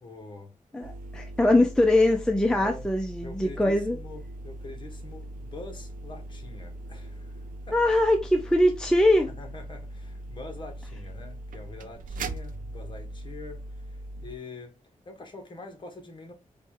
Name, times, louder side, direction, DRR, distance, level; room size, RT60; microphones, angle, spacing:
voice 1, 0.0-0.5 2.5-2.9 3.2-7.4 7.7-7.8 9.3-14.8 15.0-16.3, left 3 dB, 35° left, 1.4 m, -44 dB
voice 2, 0.7-4.0 7.7-9.3, left 1 dB, 5° left, 0.5 m, -22 dB
sound 1, 0.8-14.4, right 1 dB, 85° right, 0.5 m, -40 dB
4.2 x 3.1 x 3.6 m
wide cardioid pair, 125°, 14 cm